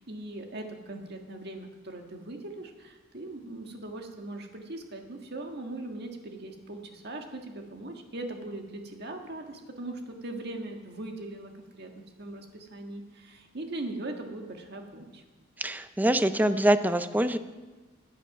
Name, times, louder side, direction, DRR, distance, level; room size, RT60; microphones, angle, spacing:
voice 1, 0.0-15.2, right 2 dB, 55° right, 3 dB, 1.7 m, -40 dB
voice 2, 15.6-17.4, right 1 dB, 10° right, 11 dB, 0.6 m, -24 dB
19.5 x 8.6 x 6.0 m, 1.3 s
head